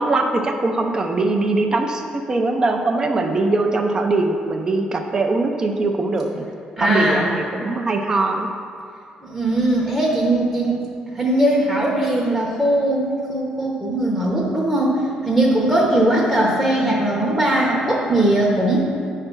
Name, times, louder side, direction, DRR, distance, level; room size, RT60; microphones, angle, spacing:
voice 1, 0.0-6.5 6.8-8.5, right 2 dB, 25° right, 4 dB, 0.5 m, -21 dB
voice 2, 6.8-7.3 9.2-10.8 11.1-15.0 15.2-18.8, right 1 dB, 5° right, -4 dB, 0.9 m, -19 dB
8.6 x 3.3 x 6.0 m, 2.4 s
cardioid pair, 145°, 3 cm